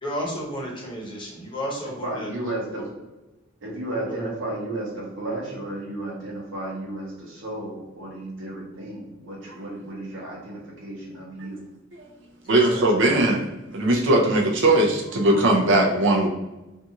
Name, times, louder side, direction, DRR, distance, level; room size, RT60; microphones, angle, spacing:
voice 1, 0.0-2.3 2.8-2.9 4.1-4.3 12.5-12.8, equal, 25° left, -4 dB, 0.7 m, -32 dB
voice 2, 2.0-2.8 3.6-11.6, right 1 dB, 90° right, -4 dB, 0.9 m, -33 dB
voice 3, 12.5-13.4 13.7-16.3, right 1 dB, 70° right, -1 dB, 0.5 m, -19 dB
2.6 x 2.3 x 2.8 m, 1.1 s
head